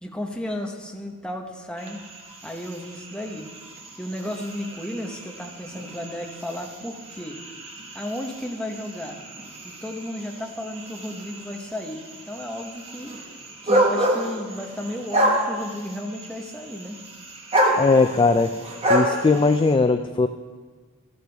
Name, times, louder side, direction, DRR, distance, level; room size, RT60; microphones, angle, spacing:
voice 1, 0.0-2.0 2.4-3.5 4.0-7.4 7.9-9.2 9.6-13.2 13.6-17.0, left 1 dB, 5° left, 1 dB, 1.0 m, -33 dB
sound 1, 1.8-19.7, equal, 30° right, 1.5 m, -29 dB
voice 2, 17.7-18.6 18.9-20.3, left 3 dB, 20° left, 9 dB, 0.3 m, -19 dB
13.5 x 13.0 x 3.5 m, 1.4 s
head